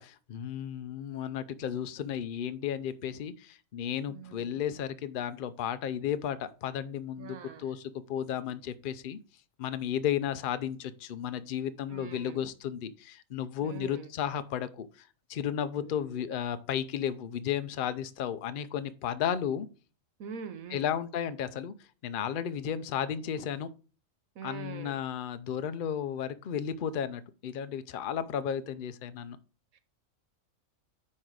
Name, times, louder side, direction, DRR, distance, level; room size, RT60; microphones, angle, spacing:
voice 1, 0.0-9.2 9.6-19.7 20.7-21.7 22.0-23.7 24.4-29.4, left 9 dB, 55° left, 12 dB, 0.6 m, -34 dB
voice 2, 4.1-4.7 7.2-7.7 11.9-12.5 13.6-14.1 15.8-16.2 20.2-20.9 24.4-25.0 29.7-29.8, right 7 dB, 90° right, 11 dB, 1.4 m, -44 dB
9.9 x 3.9 x 4.7 m, 0.36 s
omnidirectional pair, 1.4 m